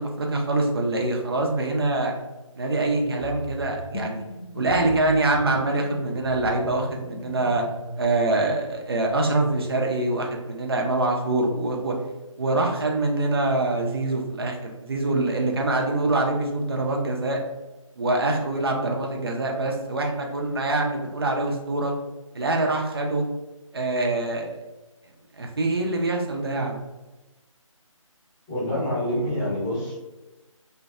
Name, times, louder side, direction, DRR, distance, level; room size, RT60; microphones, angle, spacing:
voice 1, 0.0-2.1 2.6-4.2 4.5-7.6 8.0-11.9 12.4-17.4 18.0-21.9 22.3-23.2 23.7-24.5 25.4-26.8, right 2 dB, 45° right, 1 dB, 0.5 m, -24 dB
sound 1, 3.0-8.0, left 1 dB, 75° left, 0.6 m, -38 dB
voice 2, 28.5-30.0, left 1 dB, 10° left, -12 dB, 0.8 m, -26 dB
2.5 x 2.1 x 2.4 m, 1.1 s
figure-of-eight pair, 165°, 17 cm